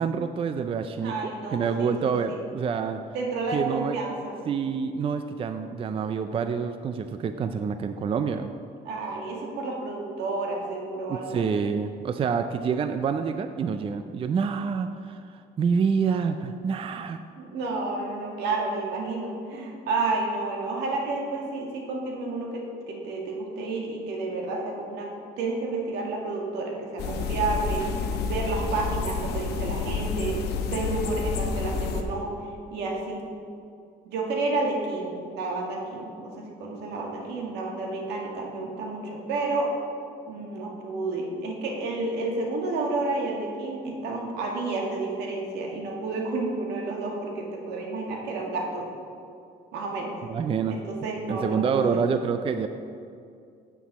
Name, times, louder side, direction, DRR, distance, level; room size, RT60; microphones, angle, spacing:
voice 1, 0.0-3.0 3.5-4.0 4.5-8.5 11.1-17.2 50.3-50.8 51.3-52.7, right 6 dB, 35° right, 9 dB, 0.4 m, -27 dB
voice 2, 1.0-2.4 3.1-4.4 8.8-11.7 17.4-30.4 30.7-32.3 32.7-33.2 34.0-39.7 40.3-48.9 49.7-50.1 50.7-52.0, right 3 dB, 85° right, 0 dB, 1.9 m, -30 dB
sound 1, 27.0-32.0, left 5 dB, 80° left, 0.9 m, -29 dB
9.9 x 8.2 x 4.2 m, 2.4 s
cardioid pair, 110°, 17 cm